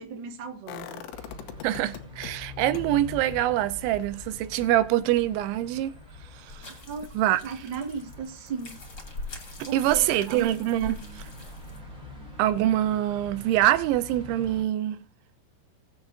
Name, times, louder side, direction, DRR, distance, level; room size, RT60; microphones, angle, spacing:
voice 1, 0.0-1.4 6.7-7.1 7.4-8.8 9.7-10.5, right 6 dB, 60° right, 1.1 m, -36 dB
sound 1, 0.7-2.3 2.7-8.6 8.9-9.0, left 8 dB, 85° left, 3.3 m, -44 dB
sound 2, 1.1-14.6, left 3 dB, 15° right, 2.0 m, -45 dB
voice 2, 1.6-5.9 6.3-6.7 7.2-7.4 9.7-11.2 12.4-15.0, right 13 dB, 85° right, 3.1 m, -25 dB
sound 3, 6.5-11.8, left 2 dB, 30° left, 2.2 m, -43 dB
19.0 x 7.9 x 2.6 m
omnidirectional pair, 5.2 m